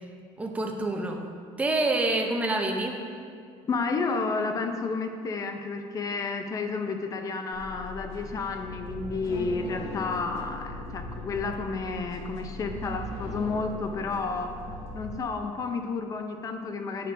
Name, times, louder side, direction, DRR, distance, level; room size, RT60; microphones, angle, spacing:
voice 1, 0.4-1.2 1.6-3.0, right 2 dB, 10° right, 2 dB, 0.6 m, -27 dB
voice 2, 3.7-14.6 14.9-17.1, left 4 dB, 30° left, 5 dB, 0.5 m, -31 dB
sound 1, 7.5-15.1, left 1 dB, 60° left, 1.2 m, -39 dB
9.4 x 6.7 x 2.6 m, 2.2 s
cardioid pair, 145°, 12 cm